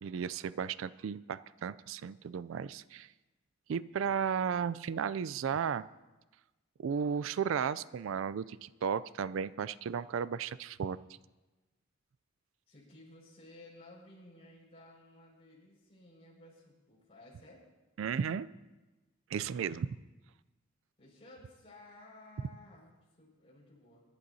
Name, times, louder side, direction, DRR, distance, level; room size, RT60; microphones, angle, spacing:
voice 1, 0.0-3.1 3.7-5.8 6.8-11.0 18.0-18.5 19.3-20.0, right 7 dB, 70° right, 18 dB, 0.3 m, -34 dB
voice 2, 12.7-17.6 21.0-22.9 23.2-24.0, left 2 dB, 30° left, -5 dB, 5.5 m, -56 dB
23.5 x 11.5 x 2.7 m, 1.1 s
head